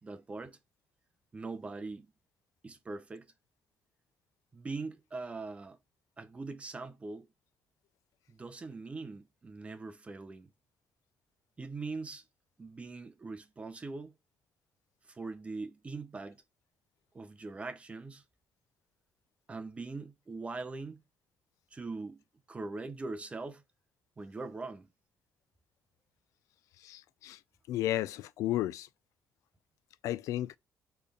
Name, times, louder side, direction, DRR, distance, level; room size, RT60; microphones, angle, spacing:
voice 1, 0.0-0.6 1.3-2.1 2.6-3.3 4.5-5.8 6.2-7.3 8.3-10.5 11.6-12.2 12.6-14.1 15.1-16.4 17.1-18.2 19.5-21.0 21.7-23.6 24.2-24.9, right 3 dB, 25° right, 0.8 m, -41 dB
voice 2, 26.8-27.4 27.7-28.9 30.0-30.6, left 14 dB, 90° left, 0.3 m, -33 dB
4.2 x 3.4 x 3.6 m
cardioid pair, 120°, 5 cm